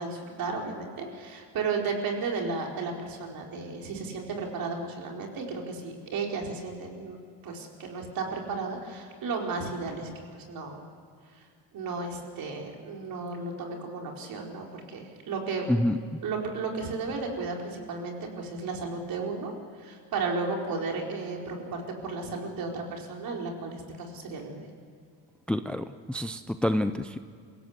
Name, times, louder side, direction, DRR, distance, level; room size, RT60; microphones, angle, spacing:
voice 1, 0.0-7.2 7.4-10.8 11.7-15.7 16.2-19.5 19.8-24.6, right 4 dB, 55° right, 1 dB, 4.7 m, -34 dB
voice 2, 25.5-27.2, left 1 dB, 5° left, 10 dB, 0.5 m, -27 dB
27.5 x 17.0 x 8.1 m, 2.3 s
cardioid pair, 145°, 41 cm